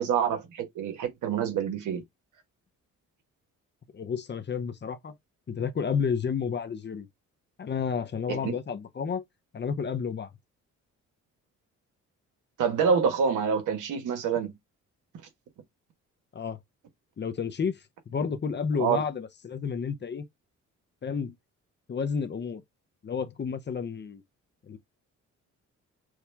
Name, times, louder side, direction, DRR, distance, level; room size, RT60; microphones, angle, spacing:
voice 1, 0.0-2.0 8.3-8.6 12.6-14.5 18.8-19.0, right 7 dB, 85° right, 1.5 m, -26 dB
voice 2, 3.9-5.1 5.5-7.1 7.6-9.2 9.5-10.3 16.3-16.6 17.2-20.3 21.0-21.3 21.9-22.6 23.0-24.2 24.6-24.8, left 6 dB, 35° left, 0.8 m, -31 dB
6.3 x 2.3 x 3.4 m
cardioid pair, 90°, 30 cm